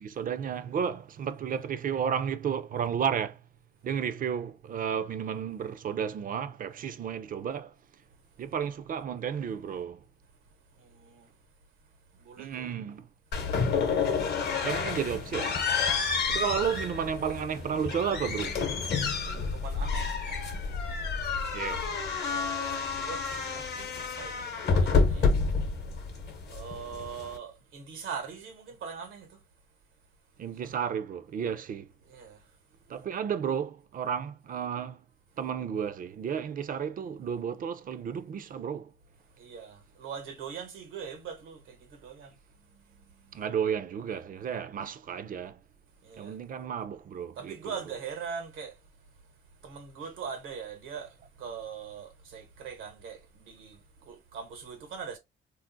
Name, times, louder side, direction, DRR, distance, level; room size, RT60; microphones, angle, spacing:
voice 1, 0.0-3.4 3.8-7.7 8.4-10.0 12.4-13.1 14.6-15.5 16.3-18.6 21.5-21.9 30.4-31.9 32.9-35.0 35.4-38.9 43.3-45.6 46.2-47.8, right 7 dB, 45° right, 0.4 m, -32 dB
voice 2, 10.7-11.3 12.1-12.7 16.4-16.6 19.4-20.2 22.2-25.3 26.5-29.4 30.6-30.8 32.1-32.5 39.4-43.4 46.0-46.4 47.3-48.8 49.6-55.2, right 6 dB, 90° right, 1.1 m, -42 dB
sound 1, 13.3-27.4, left 5 dB, 55° left, 0.8 m, -29 dB
2.5 x 2.0 x 3.8 m
cardioid pair, 90°, 20 cm